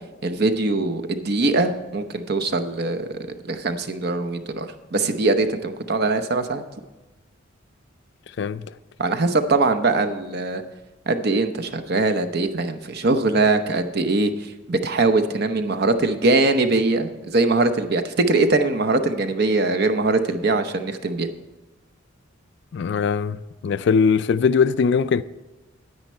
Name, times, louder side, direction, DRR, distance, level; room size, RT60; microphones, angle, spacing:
voice 1, 0.2-3.1 3.5-6.6 9.0-10.6 11.1-21.3, right 3 dB, 50° right, 0.8 m, -22 dB
voice 2, 22.7-23.4 23.6-25.2, left 5 dB, 60° left, 0.3 m, -20 dB
9.6 x 9.5 x 4.3 m
head